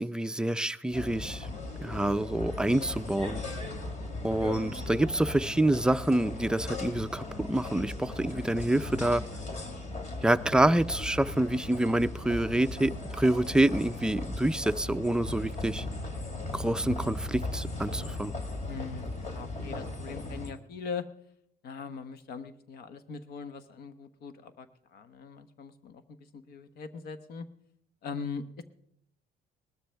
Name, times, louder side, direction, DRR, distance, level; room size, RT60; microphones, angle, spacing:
voice 1, 0.0-1.5 1.8-3.4 4.2-9.2 10.2-15.9 16.5-18.3, right 1 dB, 5° right, 0.4 m, -27 dB
sound 1, 0.9-20.5, left 2 dB, 45° left, 2.8 m, -37 dB
voice 2, 18.7-21.0 21.6-27.5 28.0-28.6, left 5 dB, 70° left, 1.2 m, -41 dB
19.0 x 13.0 x 3.4 m
cardioid pair, 110°, 17 cm